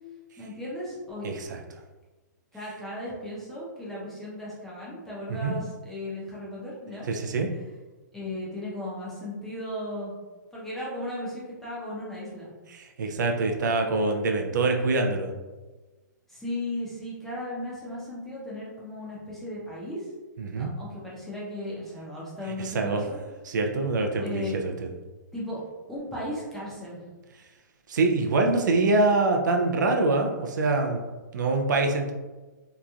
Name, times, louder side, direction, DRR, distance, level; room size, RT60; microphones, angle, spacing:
voice 1, 0.4-1.3 2.5-7.1 8.1-10.1 10.5-12.5 16.3-20.1 20.6-23.2 24.2-24.6 25.3-25.6 25.9-27.0, left 1 dB, 5° left, -8 dB, 0.6 m, -36 dB
voice 2, 1.2-1.6 5.3-5.5 7.1-7.5 12.7-15.3 20.4-20.7 22.6-23.0 23.5-24.9 27.9-31.0 31.3-32.1, right 3 dB, 75° right, 3 dB, 0.5 m, -25 dB
2.9 x 2.5 x 2.3 m, 1.2 s
hypercardioid pair, 155°, 10 cm